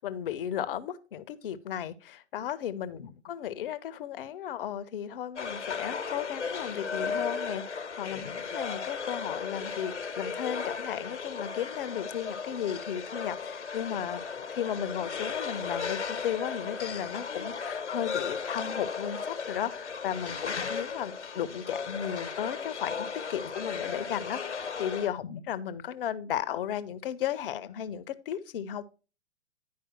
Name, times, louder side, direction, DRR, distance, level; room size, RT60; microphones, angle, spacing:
voice 1, 0.0-14.2 14.5-28.8, left 9 dB, 55° left, 0.9 m, -35 dB
sound 1, 5.4-25.1, left 5 dB, 80° left, 1.2 m, -35 dB
10.5 x 5.0 x 4.4 m
figure-of-eight pair, 110°, 34 cm